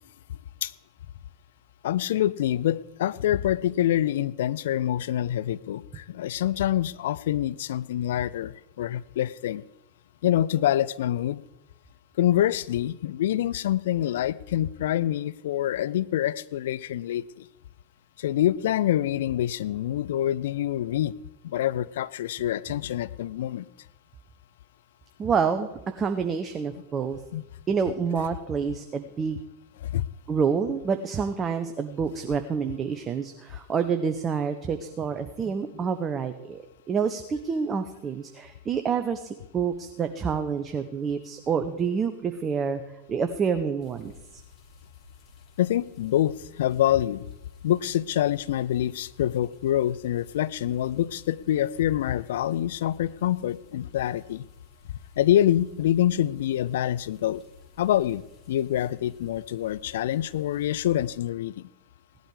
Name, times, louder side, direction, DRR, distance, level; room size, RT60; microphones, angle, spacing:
voice 1, 1.8-9.6 10.2-11.4 12.2-17.5 18.2-21.1 21.4-23.7 27.3-27.4 29.8-30.1 45.6-47.2 47.6-54.4 55.2-57.4 57.8-58.2 58.5-61.7, left 12 dB, 55° left, 17 dB, 0.5 m, -26 dB
voice 2, 25.2-25.7 26.0-27.2 27.7-29.4 30.3-39.3 39.5-42.8 43.1-44.1, right 6 dB, 25° right, 8 dB, 1.0 m, -28 dB
sound 1, 43.8-61.1, left 5 dB, 30° left, 3.7 m, -53 dB
17.0 x 12.0 x 4.9 m, 0.95 s
figure-of-eight pair, 90°, 0 cm